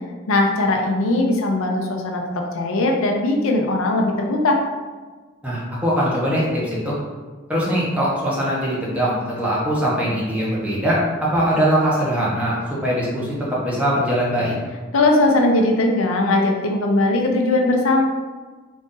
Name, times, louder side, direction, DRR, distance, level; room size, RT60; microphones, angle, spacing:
voice 1, 0.3-4.6 14.9-18.0, left 2 dB, 80° left, 2 dB, 0.6 m, -19 dB
voice 2, 5.4-7.0 7.5-12.6 12.8-13.4 13.6-14.5, equal, 5° right, -7 dB, 0.9 m, -21 dB
3.9 x 2.5 x 3.7 m, 1.4 s
head